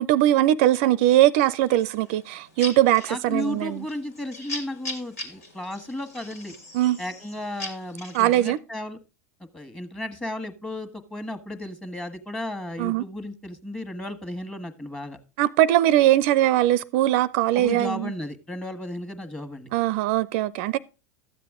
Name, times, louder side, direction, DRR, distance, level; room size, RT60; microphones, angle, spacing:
voice 1, 0.0-3.8 6.7-7.0 8.1-8.6 12.8-13.0 15.4-18.1 19.7-20.8, right 14 dB, 60° right, 0.4 m, -21 dB
sound 1, 1.6-8.6, left 1 dB, 80° left, 2.8 m, -40 dB
voice 2, 3.1-6.5 7.0-9.0 9.5-15.2 17.5-19.7, left 1 dB, 10° left, 1.4 m, -34 dB
13.0 x 7.6 x 3.6 m
hypercardioid pair, 90°, 8 cm